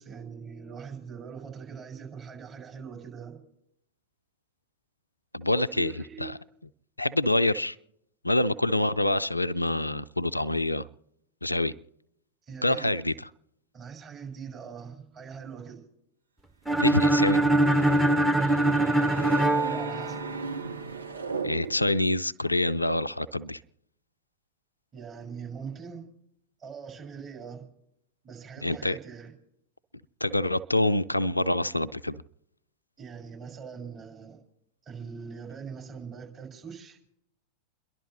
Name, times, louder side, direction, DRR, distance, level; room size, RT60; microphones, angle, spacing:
voice 1, 0.0-3.4 5.7-6.3 12.5-12.9 13.7-15.8 19.5-20.3 24.9-26.1 26.6-27.7 28.2-29.3 33.0-34.4 34.8-37.0, right 6 dB, 30° right, 6.3 m, -42 dB
voice 2, 5.3-6.4 7.0-7.8 8.2-10.9 11.4-11.7 12.6-13.1 16.8-17.4 21.4-23.6 28.6-29.0 30.2-32.2, left 1 dB, 85° left, 0.5 m, -26 dB
sound 1, 16.7-20.6, right 1 dB, 5° right, 1.0 m, -23 dB
sound 2, 16.8-22.1, right 5 dB, 75° right, 0.8 m, -37 dB
30.0 x 11.5 x 3.2 m
figure-of-eight pair, 90°, 0 cm